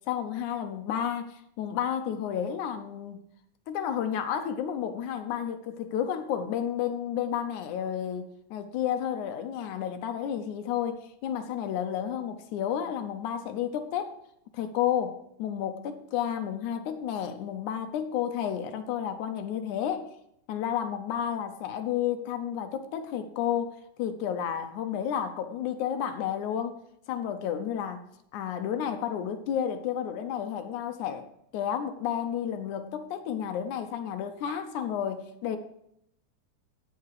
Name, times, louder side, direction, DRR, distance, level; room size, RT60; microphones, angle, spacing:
voice 1, 0.1-3.2 3.7-14.2 14.5-20.1 20.5-26.8 27.1-28.0 28.3-31.3 31.5-35.6, left 9 dB, 80° left, 8 dB, 2.1 m, -31 dB
16.5 x 5.8 x 4.7 m, 0.76 s
omnidirectional pair, 3.5 m